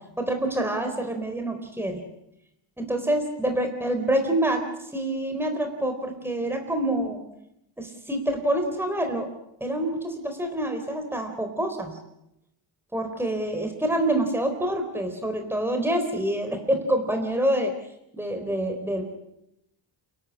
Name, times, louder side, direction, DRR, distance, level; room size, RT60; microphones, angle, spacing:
voice 1, 0.2-2.0 2.8-7.2 7.8-9.3 9.6-12.0 12.9-17.7 18.1-19.0, right 1 dB, 5° right, 5 dB, 4.0 m, -26 dB
29.5 x 13.0 x 9.8 m, 0.83 s
cardioid pair, 105°, 48 cm